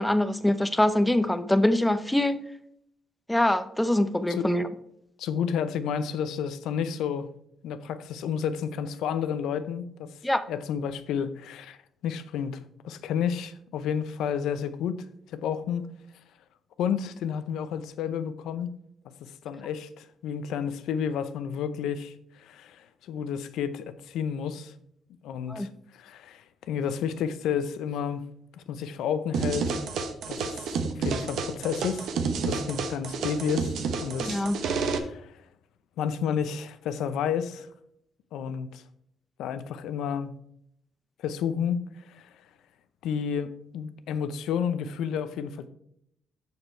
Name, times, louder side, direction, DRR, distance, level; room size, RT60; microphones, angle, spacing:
voice 1, 0.0-2.4 3.3-4.7 10.2-10.4 25.5-25.7 34.2-34.6, left 1 dB, 5° left, 0.7 m, -24 dB
voice 2, 5.2-7.3 7.6-10.1 10.5-11.8 12.0-15.9 16.8-18.7 19.4-24.7 25.2-25.7 25.9-28.2 28.6-29.7 30.3-30.7 31.0-32.1 32.5-33.7 34.0-35.3 36.0-37.7 38.3-38.8 39.4-40.3 41.2-42.3 43.0-45.7, left 7 dB, 85° left, 0.6 m, -31 dB
sound 1, 29.3-35.0, right 5 dB, 75° right, 1.0 m, -30 dB
6.8 x 6.7 x 4.4 m
cardioid pair, 90°, 0 cm